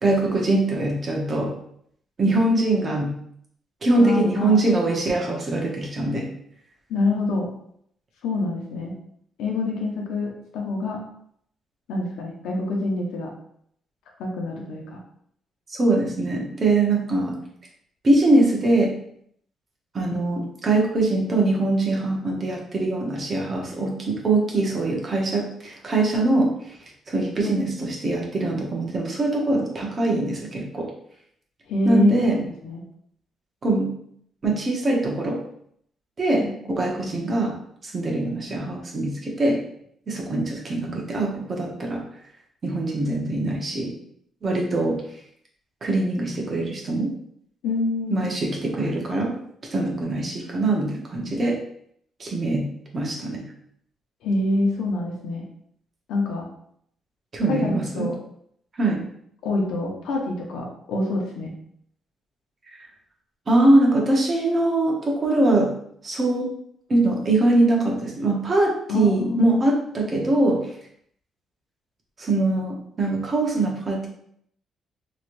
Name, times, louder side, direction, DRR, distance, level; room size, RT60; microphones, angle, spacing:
voice 1, 0.0-1.5 2.2-3.1 3.8-6.2 15.7-17.3 18.0-18.9 19.9-26.7 27.1-30.8 31.8-32.4 33.6-33.9 34.4-35.4 36.2-37.5 37.8-39.6 40.1-42.0 42.6-43.9 44.4-45.0 45.8-47.1 48.1-49.3 49.7-51.6 52.2-52.7 52.9-53.4 57.3-58.1 58.8-59.0 63.5-65.7 66.0-66.5 66.9-70.6 72.2-74.1, right 2 dB, 40° right, -1 dB, 0.9 m, -22 dB
voice 2, 4.0-4.6 6.9-7.5 8.2-8.9 9.4-11.0 11.9-13.3 14.2-15.0 27.4-27.5 27.8-28.0 31.7-32.8 36.4-36.5 47.6-48.3 54.2-55.4 56.1-56.4 57.5-58.2 59.4-61.5 68.9-69.6, left 3 dB, 85° left, 0 dB, 0.7 m, -26 dB
3.1 x 3.0 x 2.6 m, 0.69 s
cardioid pair, 90°, 0 cm